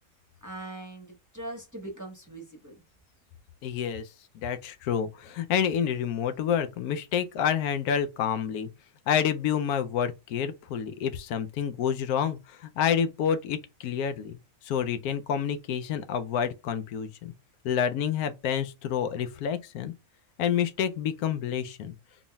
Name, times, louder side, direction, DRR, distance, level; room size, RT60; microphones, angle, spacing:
voice 1, 0.4-2.8, right 2 dB, 15° right, 0.7 m, -41 dB
voice 2, 3.6-4.1 4.3-8.7 9.1-14.4 14.6-17.3 17.6-19.9 20.4-21.9, left 8 dB, 85° left, 1.1 m, -28 dB
4.0 x 3.6 x 2.3 m
omnidirectional pair, 1.5 m